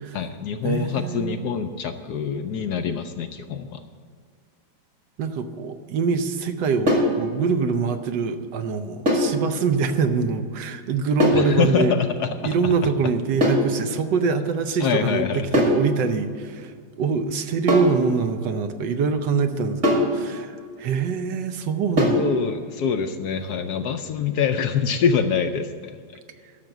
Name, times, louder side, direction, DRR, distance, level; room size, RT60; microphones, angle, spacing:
voice 1, 0.1-3.8 11.3-12.5 14.8-15.6 22.2-26.0, left 7 dB, 70° left, 7 dB, 1.0 m, -25 dB
voice 2, 0.6-1.5 5.2-11.9 12.4-22.2, right 5 dB, 70° right, 8 dB, 1.4 m, -24 dB
sound 1, 6.9-7.2 9.1-9.4 11.2-11.5 13.4-13.7 15.5-15.8 17.7-18.0 19.8-20.2 22.0-22.3, left 1 dB, 40° right, 2.5 m, -19 dB
12.0 x 6.7 x 7.8 m, 2.1 s
omnidirectional pair, 2.1 m